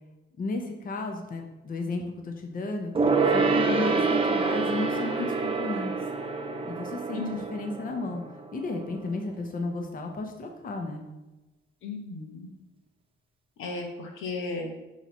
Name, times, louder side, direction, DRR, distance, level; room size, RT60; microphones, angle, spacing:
voice 1, 0.4-2.9 3.3-5.9 6.6-8.2 8.5-11.1, left 2 dB, 45° left, 3 dB, 0.9 m, -33 dB
Gong, 2.9-8.8 9.1-9.2, right 4 dB, 25° right, 0.8 m, -27 dB
voice 2, 3.6-4.0 7.1-7.4 11.8-12.5 13.6-14.7, left 3 dB, 90° left, 2 dB, 1.1 m, -35 dB
6.3 x 3.1 x 5.5 m, 1.1 s
cardioid pair, 90°, 20 cm